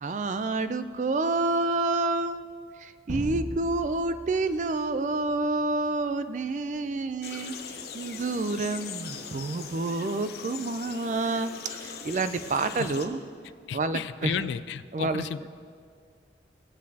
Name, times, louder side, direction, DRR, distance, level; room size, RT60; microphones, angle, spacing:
voice 1, 0.0-2.4 2.8-7.5 7.9-13.2 13.7-14.5 14.9-15.5, right 3 dB, 45° right, 11 dB, 0.4 m, -28 dB
sound 1, 3.1-5.7, equal, 80° right, 1.5 m, -38 dB
sound 2, 7.2-13.1, left 6 dB, 60° left, 0.7 m, -41 dB
voice 2, 13.7-15.5, left 7 dB, 85° left, 15 dB, 0.3 m, -33 dB
16.0 x 8.3 x 2.8 m, 2.1 s
head